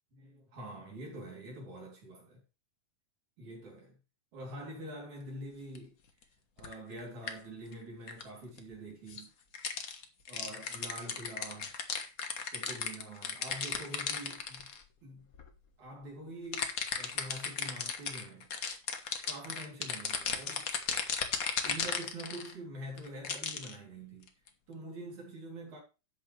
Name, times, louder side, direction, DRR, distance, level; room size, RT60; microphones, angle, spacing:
voice 1, 0.1-2.4 3.4-4.0 4.3-6.0 6.6-9.3 10.3-11.7 12.5-14.7 15.0-15.3 15.8-18.7 19.2-20.7 21.6-24.3 24.7-25.8, right 1 dB, 70° right, 4.5 m, -45 dB
sound 1, 5.7-5.8 6.6-7.0 7.3-7.4 7.7-7.8 8.1-8.2 8.6-8.7 9.1-9.2 9.5-14.8 15.3-15.5 16.5-22.5 23.0-23.7 24.3-24.5, left 6 dB, 55° left, 0.9 m, -36 dB
12.0 x 8.2 x 3.3 m
omnidirectional pair, 3.5 m